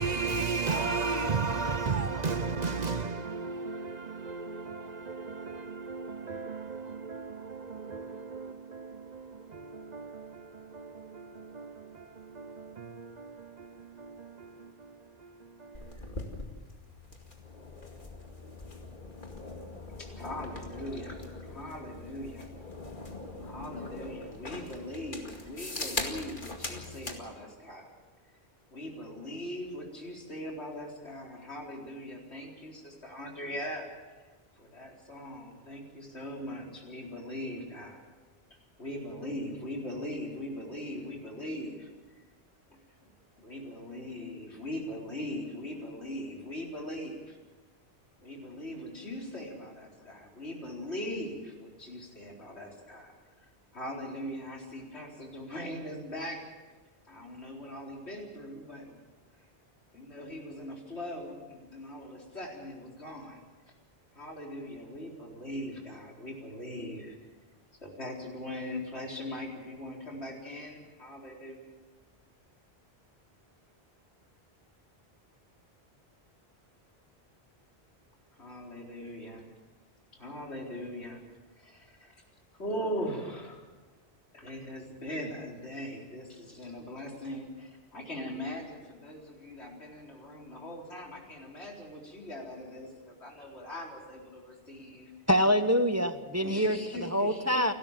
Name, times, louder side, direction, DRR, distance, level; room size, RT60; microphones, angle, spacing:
voice 1, 0.0-16.2, right 4 dB, 45° right, 0.8 m, -35 dB
sound 1, 15.7-27.2, left 2 dB, 50° left, 2.5 m, -41 dB
voice 2, 20.0-22.5 23.4-27.9 28.7-33.9 34.6-38.0 38.8-41.9 42.7-43.1 43.4-47.4 48.2-53.1 53.7-56.4 57.1-59.0 59.9-63.4 64.1-67.2 67.8-71.7 78.4-79.5 80.1-81.2 81.6-82.2 82.5-83.7 84.3-95.1 96.4-97.5, left 1 dB, 85° left, 4.5 m, -40 dB
voice 3, 95.3-96.8 97.1-97.7, equal, 15° right, 0.9 m, -25 dB
29.5 x 12.5 x 7.4 m
omnidirectional pair, 1.1 m